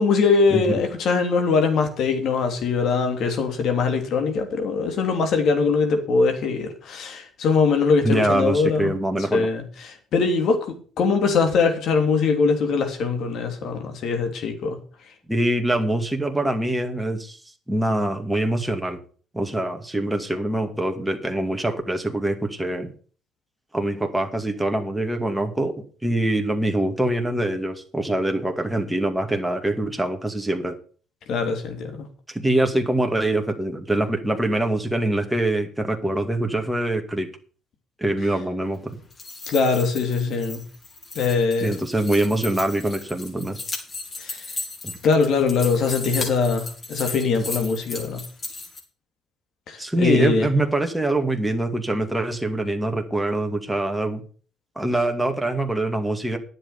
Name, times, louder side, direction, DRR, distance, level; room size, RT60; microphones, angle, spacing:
voice 1, 0.0-8.9 9.3-14.8 31.3-32.1 39.5-40.6 41.1-41.7 44.2-44.4 45.0-48.2 49.7-50.5, left 4 dB, 65° left, 3.1 m, -22 dB
voice 2, 8.0-9.5 15.3-17.4 17.7-19.0 19.3-22.9 23.7-25.7 26.0-30.8 32.3-37.3 38.0-39.0 41.6-43.6 44.8-44.9 49.8-54.2 54.8-56.4, right 1 dB, 5° right, 2.2 m, -24 dB
sound 1, 39.0-48.8, left 3 dB, 35° left, 4.3 m, -35 dB
10.5 x 7.7 x 6.7 m
supercardioid pair, 80°, 0 cm